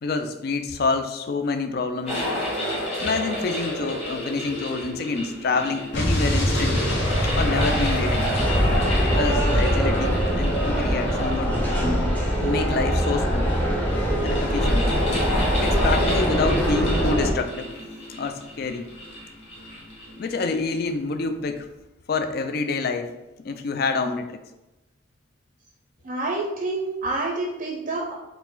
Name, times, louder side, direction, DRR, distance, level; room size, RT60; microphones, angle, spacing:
voice 1, 0.0-2.3 3.0-6.9 7.2-8.4 9.2-11.6 12.4-13.5 14.2-14.9 15.6-17.7 18.1-18.9 20.2-21.7 22.1-23.1 23.4-24.4, left 4 dB, 50° left, 7 dB, 0.4 m, -27 dB
sound 1, 2.1-20.7, equal, 30° left, 1.1 m, -31 dB
Explosion, 5.9-10.7, equal, 65° left, 1.1 m, -25 dB
sound 2, 8.3-17.3, equal, 10° left, 0.6 m, -23 dB
voice 2, 26.0-28.1, right 2 dB, 40° right, -2 dB, 0.5 m, -28 dB
4.7 x 2.1 x 3.7 m, 0.98 s
head